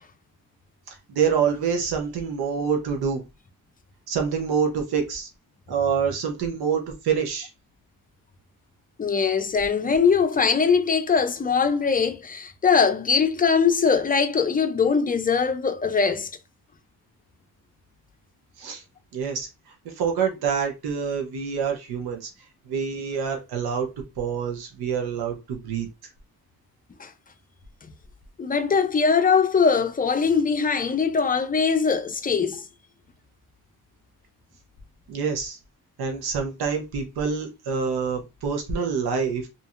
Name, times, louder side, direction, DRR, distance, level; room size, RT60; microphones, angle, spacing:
voice 1, 0.9-3.2 4.1-5.3 5.7-7.5 18.6-18.8 19.1-19.5 19.8-22.3 22.7-23.9 24.2-25.9 35.1-35.6 36.0-39.5, right 6 dB, 80° right, 0.9 m, -26 dB
voice 2, 9.0-16.3 27.0-27.1 27.8-27.9 28.4-32.6, left 5 dB, 25° left, 0.5 m, -21 dB
2.7 x 2.7 x 2.4 m
cardioid pair, 85°, 37 cm